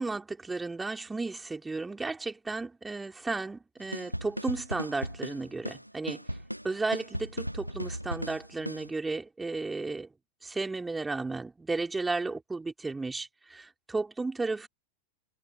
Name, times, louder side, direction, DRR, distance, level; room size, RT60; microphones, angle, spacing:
voice 1, 0.0-6.2 6.6-10.1 10.4-14.7, right 3 dB, 10° right, 3.2 m, -34 dB
sound 1, 3.9-8.9, equal, 90° right, 1.7 m, -37 dB
figure-of-eight pair, 90°, 0 cm